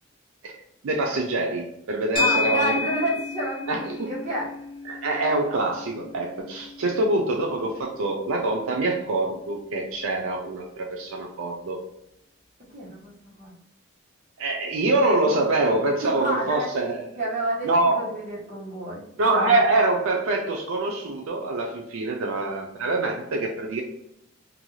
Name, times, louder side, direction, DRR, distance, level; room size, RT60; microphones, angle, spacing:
voice 1, 0.8-2.7 3.7-4.1 4.9-11.8 14.4-17.0 17.6-18.1 19.2-23.8, right 2 dB, 80° right, 1 dB, 0.4 m, -25 dB
voice 2, 2.1-4.5 12.7-13.5 16.0-16.7 17.2-19.6, equal, 35° right, -5 dB, 0.9 m, -30 dB
sound 1, 2.2-10.6, left 3 dB, 25° left, 0.3 m, -33 dB
2.5 x 2.2 x 3.0 m, 0.78 s
head